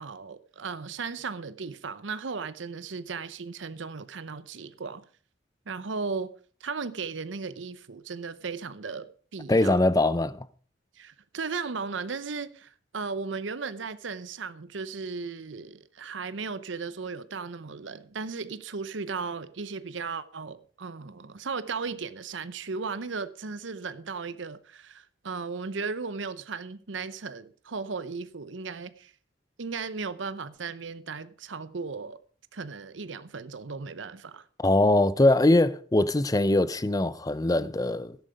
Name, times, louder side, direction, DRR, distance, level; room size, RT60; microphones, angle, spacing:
voice 1, 0.0-5.0 5.7-6.3 6.6-9.8 11.0-29.1 29.6-32.2 32.5-34.5, right 4 dB, 75° right, 0.7 m, -36 dB
voice 2, 9.5-10.4 34.6-38.2, left 2 dB, 20° left, 0.5 m, -22 dB
13.0 x 10.5 x 5.1 m
head